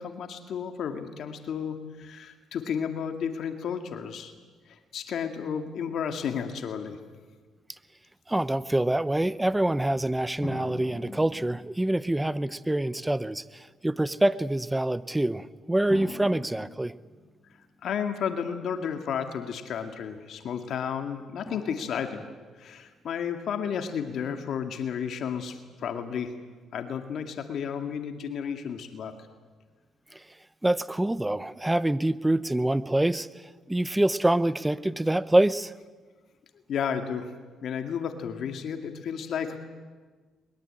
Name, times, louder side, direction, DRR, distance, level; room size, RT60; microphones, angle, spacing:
voice 1, 0.0-4.3 4.7-7.0 17.8-22.3 22.6-26.3 26.7-29.1 36.7-37.3 37.6-39.6, left 7 dB, 70° left, 6 dB, 2.1 m, -32 dB
voice 2, 8.3-16.9 30.1-30.2 30.6-35.7, right 1 dB, 10° right, 16 dB, 0.9 m, -26 dB
sound 1, 10.4-12.2 13.1-13.2 15.9-17.6 21.5-22.8, left 2 dB, 20° left, 5.0 m, -42 dB
22.0 x 22.0 x 8.9 m, 1.4 s
cardioid pair, 90°, 0 cm